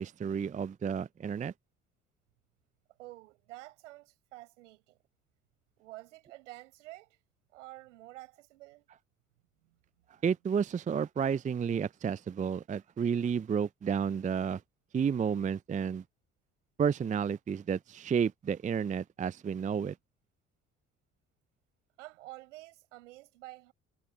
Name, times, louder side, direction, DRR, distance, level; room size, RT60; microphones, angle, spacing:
voice 1, 0.0-1.5 10.2-14.6 14.9-16.0 16.8-20.0, right 7 dB, 20° right, 0.5 m, -31 dB
voice 2, 3.0-5.0 5.8-7.2 7.5-8.9 9.6-9.8 10.1-10.2 22.0-23.7, right 18 dB, 75° right, 7.6 m, -50 dB
figure-of-eight pair, 50°, 37 cm